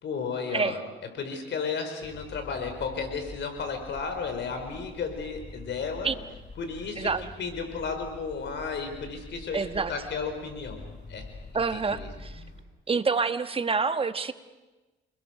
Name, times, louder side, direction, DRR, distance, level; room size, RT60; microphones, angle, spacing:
voice 1, 0.0-0.8 1.2-6.1 6.6-7.1 7.4-9.6 9.9-10.8 11.1-11.2 11.7-12.1, left 5 dB, 65° left, 6 dB, 5.0 m, -33 dB
sound 1, 2.0-12.6, left 3 dB, 40° left, 5.9 m, -46 dB
voice 2, 9.5-9.9 11.5-12.4 12.9-14.3, right 4 dB, 30° right, 10 dB, 1.2 m, -27 dB
29.5 x 21.0 x 6.7 m, 1.2 s
cardioid pair, 90°, 20 cm